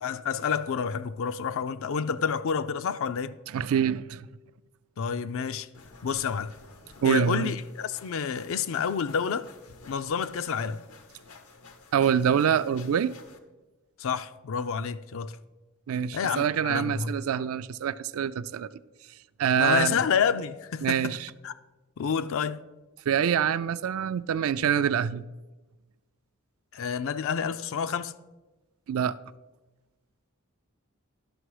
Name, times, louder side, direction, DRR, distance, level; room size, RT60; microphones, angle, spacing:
voice 1, 0.0-3.4 5.0-5.7 6.0-6.5 7.0-9.5 9.9-10.8 14.0-15.4 16.1-17.1 19.6-21.2 21.4-21.5 22.0-22.6 26.7-28.1, left 6 dB, 65° left, 0.4 m, -29 dB
voice 2, 3.5-4.3 7.0-7.5 11.9-13.1 15.9-18.7 19.4-20.0 20.8-21.3 23.1-25.2 28.9-29.2, right 8 dB, 70° right, 0.3 m, -25 dB
sound 1, 5.7-13.4, left 4 dB, 85° left, 0.9 m, -52 dB
11.0 x 6.0 x 4.8 m
head